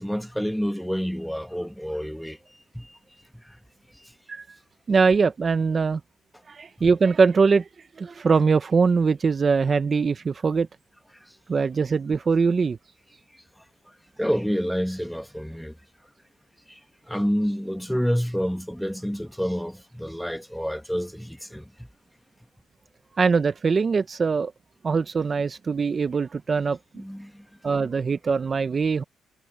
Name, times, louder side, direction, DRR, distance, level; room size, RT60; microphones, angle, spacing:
voice 1, 0.0-2.4 2.7-2.9 3.4-3.6 14.2-15.7 16.7-16.8 17.1-21.9 26.9-27.4 27.8-27.9, equal, ahead, 1.4 m, -28 dB
voice 2, 4.9-6.0 6.5-7.7 8.0-10.7 11.5-12.8 23.2-24.5 24.8-26.8 27.6-29.0, right 5 dB, 35° right, 0.6 m, -22 dB
cardioid pair, 125°, 0 cm